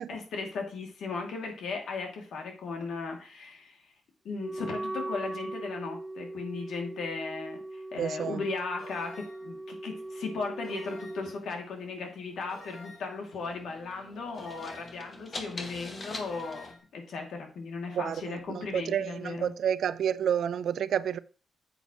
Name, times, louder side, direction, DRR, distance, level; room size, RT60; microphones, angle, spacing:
voice 1, 0.1-3.8 4.2-19.5, left 4 dB, 80° left, 2.4 m, -37 dB
Wind instrument woodwind instrument, 4.3-11.4, right 2 dB, 15° right, 0.6 m, -39 dB
voice 2, 8.0-8.4 17.9-21.2, right 9 dB, 75° right, 0.4 m, -30 dB
sound 1, 8.8-9.5 10.6-11.4 12.5-13.2 14.3-15.1 16.2-16.8, left 2 dB, 65° left, 3.9 m, -49 dB
sound 2, 10.0-16.7, left 2 dB, 35° left, 1.7 m, -46 dB
9.3 x 7.9 x 3.0 m
cardioid pair, 90°, 0 cm